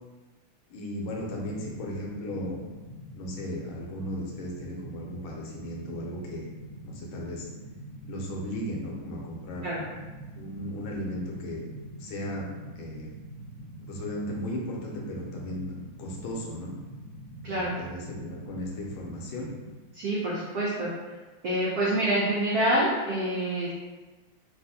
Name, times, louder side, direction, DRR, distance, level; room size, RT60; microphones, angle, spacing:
voice 1, 0.7-2.6 3.2-6.5 6.8-7.5 8.0-9.7 10.4-11.6 12.0-12.5 12.8-13.1 13.8-15.7 16.0-16.7 17.5-19.5, left 1 dB, 75° left, -2 dB, 1.4 m, -36 dB
sound 1, 1.0-19.7, right 1 dB, 40° left, 0.8 m, -44 dB
voice 2, 19.9-21.2 21.4-23.7, right 1 dB, 85° right, -6 dB, 0.8 m, -27 dB
3.4 x 2.4 x 2.6 m, 1.2 s
omnidirectional pair, 2.3 m